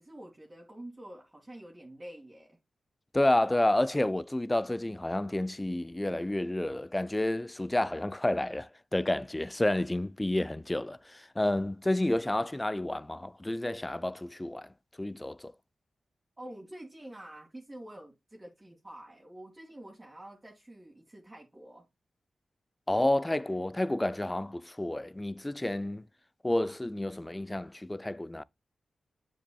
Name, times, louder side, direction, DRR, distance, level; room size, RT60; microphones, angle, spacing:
voice 1, 0.0-2.6 16.4-21.9, right 1 dB, 25° right, 2.3 m, -47 dB
voice 2, 3.1-14.7 15.0-15.5 22.9-26.1 26.4-28.4, left 1 dB, 20° left, 0.4 m, -30 dB
7.3 x 7.2 x 2.3 m
cardioid pair, 45°, 0 cm